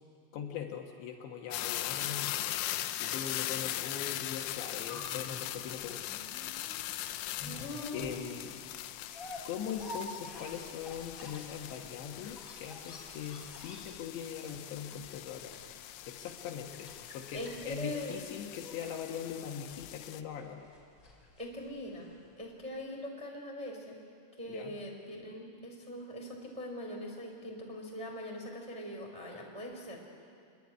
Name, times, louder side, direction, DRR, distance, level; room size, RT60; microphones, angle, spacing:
voice 1, 0.3-2.6 3.0-6.2 7.4-8.6 9.4-15.6 16.1-20.7 24.5-24.7, left 8 dB, 70° left, 2 dB, 3.3 m, -41 dB
sound 1, 1.5-20.2, left 14 dB, 85° left, 3.4 m, -40 dB
sound 2, 4.7-22.3 22.6-22.7, left 2 dB, 25° left, 3.7 m, -48 dB
voice 2, 17.8-18.1 21.4-24.0 24.4-30.0, equal, 10° right, 0 dB, 2.6 m, -42 dB
27.0 x 22.0 x 9.8 m, 2.4 s
omnidirectional pair, 5.9 m